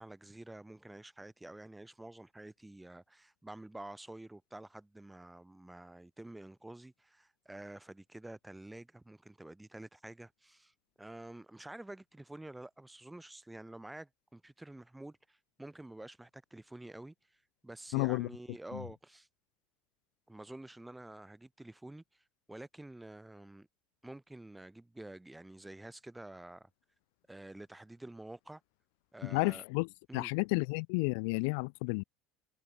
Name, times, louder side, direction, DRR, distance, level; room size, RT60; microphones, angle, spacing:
voice 1, 0.0-17.1 17.6-19.3 20.3-23.7 24.0-26.7 27.3-28.6 29.1-29.6 30.1-30.3, right 1 dB, 10° right, 4.4 m, -49 dB
voice 2, 17.9-18.3 18.7-18.8 29.2-32.0, left 32 dB, 75° left, 0.4 m, -32 dB
supercardioid pair, 95°, 0 cm